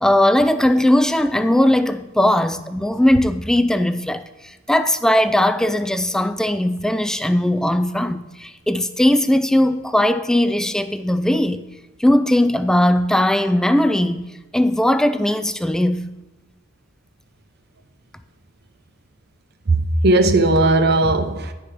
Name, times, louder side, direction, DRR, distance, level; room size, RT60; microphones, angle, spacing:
voice 1, 0.0-11.6 12.0-14.2 14.5-16.1, left 1 dB, 5° left, 0.3 m, -18 dB
voice 2, 19.7-21.5, right 2 dB, 55° right, 0.7 m, -17 dB
10.0 x 5.0 x 5.8 m
head